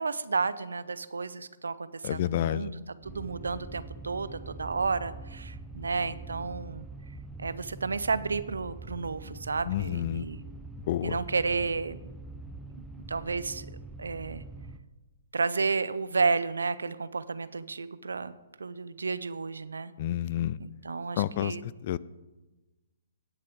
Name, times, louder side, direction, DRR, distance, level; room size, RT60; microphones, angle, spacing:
voice 1, 0.0-6.9 7.4-10.4 11.0-12.0 13.1-13.7 14.0-14.4 15.3-19.9 20.6-21.6, right 4 dB, 75° right, 16 dB, 0.5 m, -32 dB
voice 2, 2.0-2.7 9.7-10.3 10.9-11.2 20.0-20.6 21.2-22.0, left 12 dB, 45° left, 21 dB, 0.3 m, -29 dB
sound 1, 3.0-14.8, right 2 dB, 5° right, 0.6 m, -44 dB
17.5 x 6.7 x 3.6 m, 1.1 s
figure-of-eight pair, 125°, 0 cm